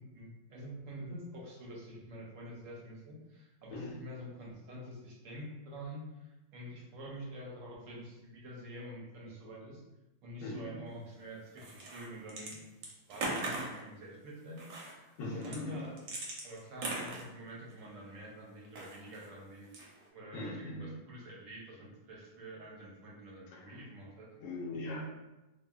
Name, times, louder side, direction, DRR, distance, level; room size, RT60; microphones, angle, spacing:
voice 1, 0.0-9.8 10.2-12.6 13.1-16.0 16.4-19.7 20.1-24.3, equal, 60° right, -4 dB, 0.9 m, -47 dB
voice 2, 10.4-10.8 15.2-15.8 20.3-20.9 23.5-23.7 24.4-25.0, left 2 dB, 75° left, -2 dB, 1.1 m, -40 dB
sound 1, 11.6-12.5 12.8-13.8 14.6-14.9 15.4-17.8 18.6-19.3 19.6-20.1, right 2 dB, 85° right, 1.2 m, -39 dB
2.9 x 2.4 x 2.2 m, 1.0 s
omnidirectional pair, 1.7 m